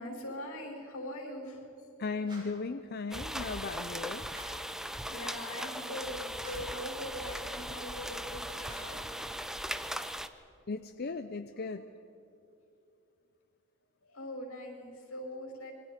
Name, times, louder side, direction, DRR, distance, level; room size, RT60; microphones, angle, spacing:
voice 1, 0.0-1.9 5.1-9.1 11.5-11.9 14.0-15.7, left 1 dB, 80° left, 1 dB, 5.8 m, -42 dB
voice 2, 2.0-4.2 10.7-11.9, left 4 dB, 45° left, 8 dB, 0.6 m, -37 dB
sound 1, 2.2-2.7 4.3-4.7 6.3-6.8 8.6-9.1, right 1 dB, 20° right, 6.7 m, -51 dB
sound 2, 3.1-10.3, equal, ahead, 0.6 m, -39 dB
27.0 x 22.5 x 5.1 m, 2.8 s
head